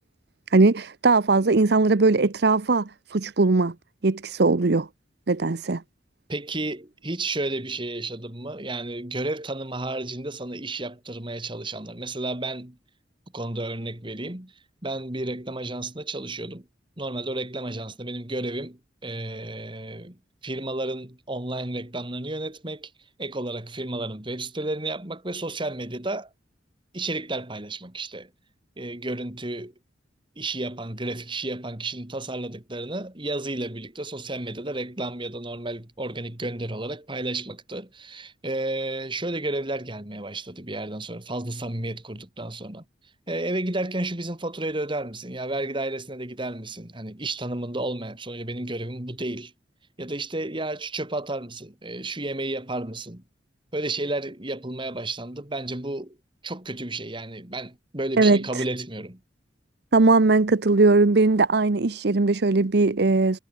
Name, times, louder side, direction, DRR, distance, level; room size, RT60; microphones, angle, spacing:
voice 1, 0.5-3.7 4.0-4.9 5.3-5.8 58.2-58.6 59.9-63.4, right 3 dB, 60° right, 0.8 m, -20 dB
voice 2, 6.3-12.8 13.3-14.5 14.8-16.7 17.0-22.9 23.2-26.3 26.9-28.3 28.8-29.7 30.4-42.8 43.3-49.5 50.0-53.2 53.7-56.2 56.4-59.2, right 2 dB, 25° right, 2.5 m, -32 dB
head